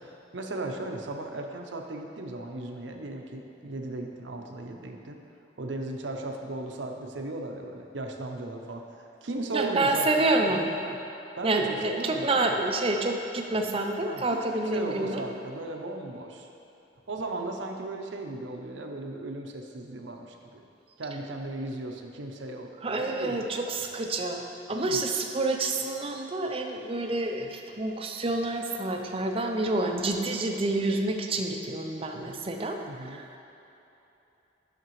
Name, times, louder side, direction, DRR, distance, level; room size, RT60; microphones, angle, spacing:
voice 1, 0.0-5.2 5.6-8.8 9.2-10.5 10.8-11.0 11.4-12.6 14.0-16.5 17.1-20.6 21.0-22.7 23.0-23.5 24.7-25.0 32.8-33.2, right 2 dB, 80° right, 3 dB, 0.7 m, -36 dB
voice 2, 9.5-10.7 11.4-15.3 22.8-32.8 33.0-33.4, right 2 dB, 30° right, 3 dB, 0.5 m, -28 dB
10.0 x 5.9 x 3.1 m, 2.9 s
head